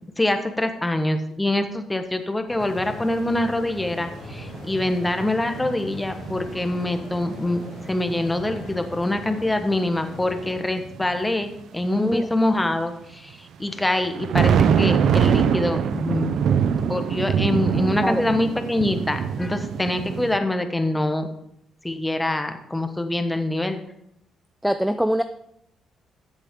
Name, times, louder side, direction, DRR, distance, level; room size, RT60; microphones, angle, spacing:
voice 1, 0.2-7.6 7.9-16.3 16.7-21.3 21.8-23.8, left 1 dB, 10° left, 7 dB, 1.3 m, -25 dB
sound 1, 2.5-10.7, left 4 dB, 45° left, 1.1 m, -41 dB
sound 2, 2.6-3.0 3.3-9.3 10.0-11.3 14.0-20.4, right 7 dB, 70° right, 0.6 m, -24 dB
voice 2, 12.0-12.3 18.0-18.2 24.6-25.2, equal, 5° right, 10 dB, 0.5 m, -22 dB
13.5 x 7.9 x 3.8 m, 0.76 s
cardioid pair, 90°, 0 cm